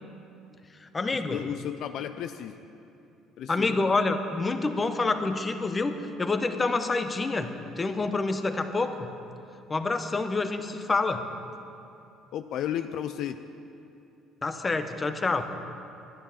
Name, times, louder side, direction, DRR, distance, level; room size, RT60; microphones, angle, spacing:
voice 1, 0.8-1.5 3.5-7.5 7.8-9.2 9.7-11.2 14.4-15.4, left 3 dB, 25° left, 8 dB, 0.8 m, -27 dB
voice 2, 1.3-2.5 3.4-3.9 12.3-13.4, left 10 dB, 65° left, 9 dB, 0.4 m, -33 dB
11.5 x 10.0 x 5.7 m, 2.8 s
cardioid pair, 110°, 0 cm